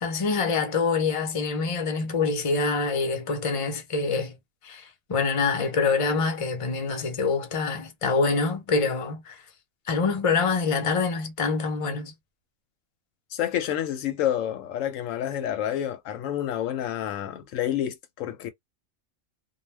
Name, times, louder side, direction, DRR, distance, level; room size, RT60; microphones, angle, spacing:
voice 1, 0.0-4.4 4.6-9.4 9.9-12.1, left 4 dB, 30° left, 0.7 m, -25 dB
voice 2, 13.3-18.5, left 11 dB, 80° left, 1.0 m, -29 dB
2.3 x 2.2 x 3.2 m
omnidirectional pair, 1.3 m